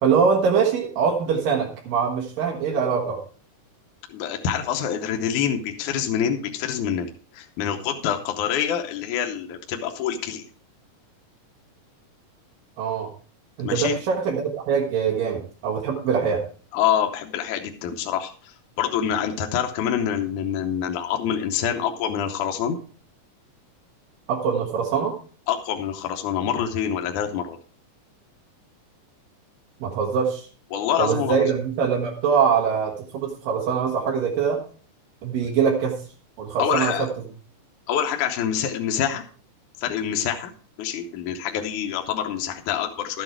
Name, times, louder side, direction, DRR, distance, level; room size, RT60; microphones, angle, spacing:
voice 1, 0.0-3.2 12.8-13.1 13.6-16.4 24.3-25.1 29.8-30.5 31.0-34.6 35.2-35.9 36.4-36.9, right 6 dB, 90° right, -1 dB, 3.4 m, -23 dB
voice 2, 4.1-10.5 13.6-14.0 16.7-18.3 18.8-22.8 25.5-27.6 30.7-31.5 36.6-37.1 37.9-39.2 39.8-40.5 40.8-43.2, left 9 dB, 75° left, 4 dB, 2.3 m, -26 dB
12.0 x 8.0 x 4.6 m, 0.40 s
omnidirectional pair, 3.8 m